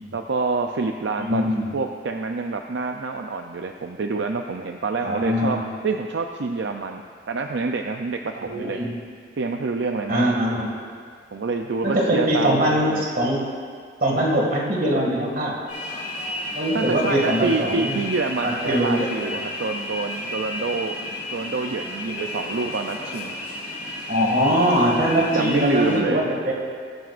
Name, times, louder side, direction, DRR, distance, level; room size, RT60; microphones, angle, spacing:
voice 1, 0.1-1.4 1.7-7.0 7.3-8.8 9.4-10.3 11.3-13.0 16.7-23.4 25.1-26.2, right 4 dB, 75° right, 4 dB, 0.5 m, -27 dB
voice 2, 1.2-1.7 5.0-5.6 8.4-8.9 10.1-10.7 11.8-13.5 14.0-15.6 16.5-18.0 18.4-19.3 24.1-26.5, equal, 50° right, -1 dB, 2.1 m, -22 dB
sound 1, 15.7-26.0, left 1 dB, 65° left, 3.1 m, -32 dB
20.5 x 9.2 x 2.5 m, 2.1 s
head